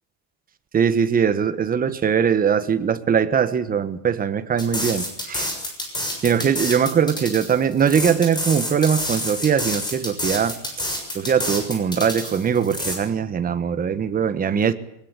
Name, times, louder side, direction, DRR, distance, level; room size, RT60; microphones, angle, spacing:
voice 1, 0.7-5.5 6.2-10.6 11.1-14.7, right 7 dB, 20° right, 1.4 m, -21 dB
sound 1, 4.6-12.9, left 1 dB, 10° left, 6.8 m, -28 dB
23.0 x 20.5 x 8.3 m
cardioid pair, 155°, 42 cm